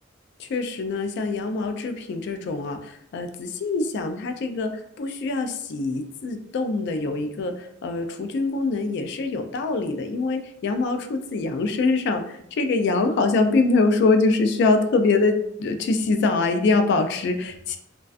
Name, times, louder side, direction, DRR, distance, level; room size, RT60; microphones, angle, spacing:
voice 1, 0.4-4.7 5.0-17.8, left 3 dB, 60° left, 7 dB, 0.3 m, -24 dB
2.4 x 2.2 x 2.3 m, 0.73 s
head